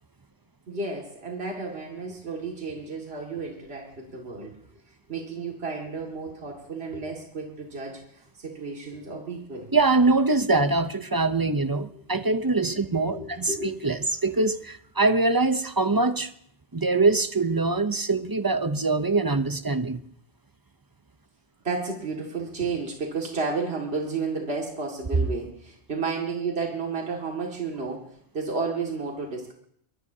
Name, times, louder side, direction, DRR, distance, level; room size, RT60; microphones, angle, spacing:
voice 1, 0.7-4.6 5.1-9.7 13.1-13.7 21.6-29.5, right 4 dB, 70° right, -1 dB, 2.4 m, -32 dB
voice 2, 9.7-16.3 16.7-20.0, right 3 dB, 25° right, 11 dB, 0.6 m, -23 dB
23.0 x 20.5 x 2.8 m, 0.68 s
omnidirectional pair, 1.1 m